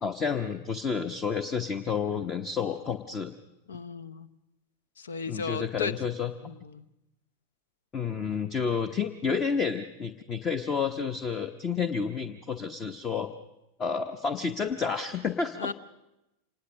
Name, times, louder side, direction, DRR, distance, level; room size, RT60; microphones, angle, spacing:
voice 1, 0.0-3.3 5.3-6.3 7.9-13.3 13.8-15.7, left 6 dB, 25° left, 10 dB, 1.0 m, -30 dB
voice 2, 3.7-4.3 5.0-5.9 6.4-6.8 15.6-15.7, left 5 dB, 70° left, 16 dB, 0.9 m, -35 dB
26.0 x 20.0 x 6.4 m, 0.91 s
figure-of-eight pair, 90°, 0 cm